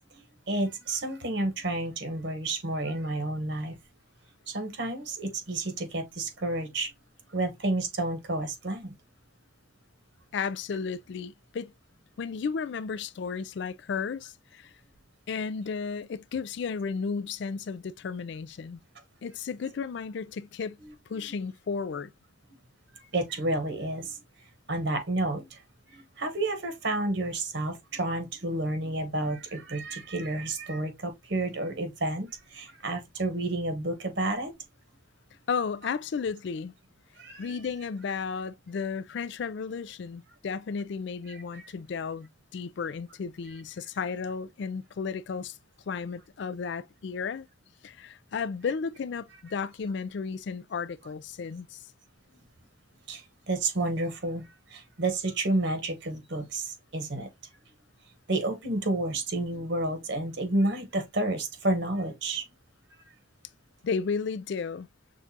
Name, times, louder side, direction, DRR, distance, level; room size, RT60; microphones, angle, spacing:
voice 1, 0.5-3.8 4.5-6.9 7.3-8.9 20.8-20.9 23.1-24.2 24.7-25.6 25.9-34.5 37.2-37.6 41.5-41.6 53.1-54.4 54.7-57.3 58.3-62.4, right 2 dB, 55° right, 1.1 m, -30 dB
voice 2, 10.3-11.7 12.2-14.7 15.3-18.8 19.2-20.8 21.1-22.1 35.5-36.7 37.4-45.6 45.9-47.5 47.8-51.8 63.8-64.9, left 5 dB, 55° left, 0.3 m, -33 dB
6.3 x 2.4 x 2.7 m
head